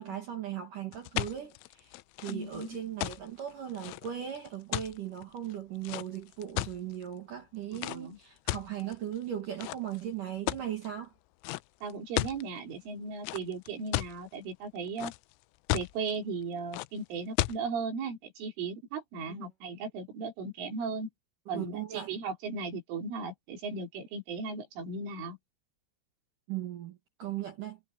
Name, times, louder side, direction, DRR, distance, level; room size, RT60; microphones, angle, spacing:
voice 1, 0.0-11.1 19.4-19.5 21.5-22.1 26.5-27.8, right 10 dB, 55° right, 2.7 m, -38 dB
sound 1, 0.9-7.0 7.7-8.0 8.5-9.2 9.6-10.0 10.5-10.9 11.4-11.6 11.9-12.4 13.2-14.2 14.6-15.3 15.7-16.1 16.7-16.9 17.4-17.6, left 21 dB, 90° left, 3.2 m, -34 dB
voice 2, 2.3-2.8 7.7-8.2 11.8-15.1 15.7-21.1 21.5-25.4, right 4 dB, 75° right, 6.7 m, -37 dB
omnidirectional pair, 5.7 m